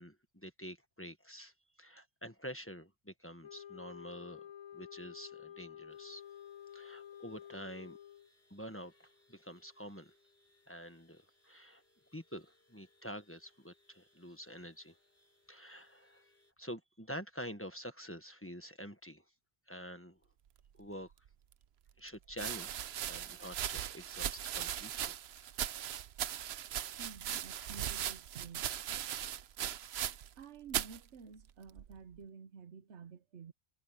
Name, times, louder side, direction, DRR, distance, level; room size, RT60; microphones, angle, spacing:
voice 1, 0.0-1.5 1.8-4.4 4.7-6.2 6.7-8.0 8.5-10.1 10.7-11.8 12.1-15.0 15.5-19.2 19.7-20.2 20.8-21.1 22.0-22.8 23.0-25.2, equal, 10° left, 1.3 m, -47 dB
sound 1, 3.4-8.3, left 10 dB, 35° left, 0.5 m, -51 dB
sound 2, 5.9-16.5, left 2 dB, 65° left, 7.2 m, -72 dB
sound 3, 21.3-21.4 22.3-30.4 30.7-31.0 31.8-32.2, right 10 dB, 70° right, 0.9 m, -39 dB
voice 2, 27.0-28.7 30.4-33.5, right 6 dB, 90° right, 1.3 m, -51 dB
omnidirectional pair, 1.1 m